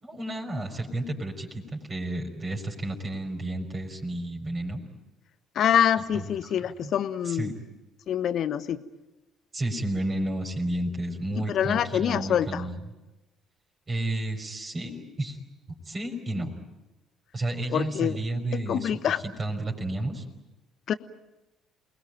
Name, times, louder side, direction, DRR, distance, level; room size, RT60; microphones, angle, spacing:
voice 1, 0.0-4.8 6.1-6.5 6.8-6.9 7.2-7.5 9.5-12.8 13.9-15.4 15.7-16.6 17.3-19.1 19.4-20.2, right 1 dB, 35° right, 1 dB, 4.9 m, -32 dB
voice 2, 5.5-7.5 8.1-8.8 11.3-12.6 17.7-18.2 18.7-19.2 20.9-21.0, left 9 dB, 55° left, 14 dB, 1.0 m, -25 dB
28.5 x 20.5 x 9.1 m, 1.0 s
figure-of-eight pair, 50°, 0 cm